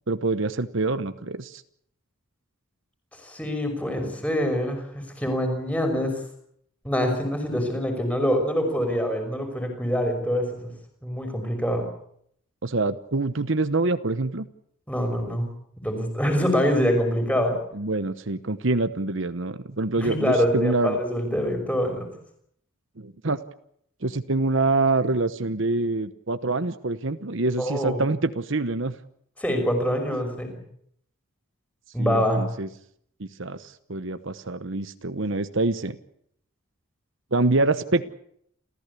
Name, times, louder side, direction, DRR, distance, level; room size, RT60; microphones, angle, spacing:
voice 1, 0.1-1.6 12.6-14.5 17.7-21.0 23.0-23.4 24.0-29.0 32.0-32.7 33.2-36.0 37.3-38.1, right 2 dB, 60° right, 11 dB, 1.0 m, -26 dB
voice 2, 3.2-6.2 6.8-10.7 11.0-11.9 14.9-15.5 15.8-17.5 20.0-22.1 27.6-28.0 29.4-30.5 31.9-32.4, equal, 5° left, 4 dB, 5.7 m, -25 dB
29.0 x 15.5 x 8.4 m, 0.70 s
head